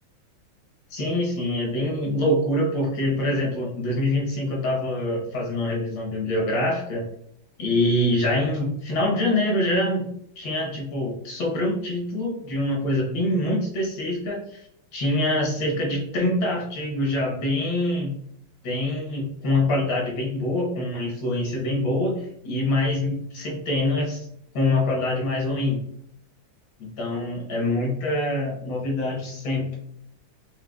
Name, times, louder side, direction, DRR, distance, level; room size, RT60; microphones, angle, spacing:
voice 1, 0.9-7.0 7.6-10.1 10.4-14.6 14.9-18.1 18.6-24.3 24.5-25.8 27.0-29.8, left 1 dB, 70° left, -2 dB, 1.6 m, -25 dB
4.8 x 2.2 x 2.2 m, 0.72 s
omnidirectional pair, 2.2 m